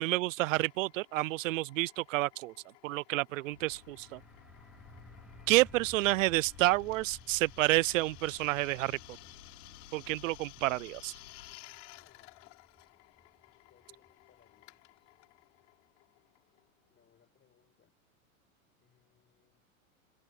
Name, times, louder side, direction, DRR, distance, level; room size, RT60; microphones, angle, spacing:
voice 1, 0.0-2.5 2.8-4.2 5.5-9.0 9.9-11.1, right 19 dB, 70° right, 0.5 m, -29 dB
Drill, 0.6-16.9, left 24 dB, 60° left, 6.1 m, -57 dB
sound 1, 3.5-11.6, left 10 dB, 80° left, 3.0 m, -57 dB
sound 2, 3.6-15.1, right 1 dB, ahead, 2.0 m, -58 dB
voice 2, 12.0-12.4 13.5-14.9 16.9-18.0 18.8-19.7, left 9 dB, 25° left, 7.8 m, -69 dB
hypercardioid pair, 105°, 41 cm